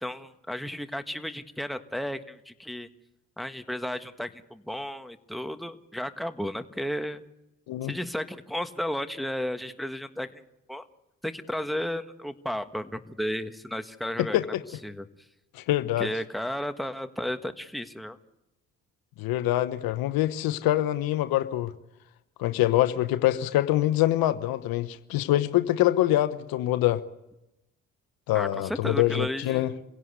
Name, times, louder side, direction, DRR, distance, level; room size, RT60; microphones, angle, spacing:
voice 1, 0.0-2.9 3.4-7.2 7.9-10.4 10.7-10.8 11.2-14.4 14.8-15.1 16.0-18.2 28.3-29.7, equal, ahead, 1.6 m, -33 dB
voice 2, 14.2-14.6 15.5-16.1 19.2-21.7 22.4-27.0 28.3-29.7, left 14 dB, 75° left, 1.0 m, -25 dB
27.5 x 16.5 x 8.2 m
hypercardioid pair, 50°, 36 cm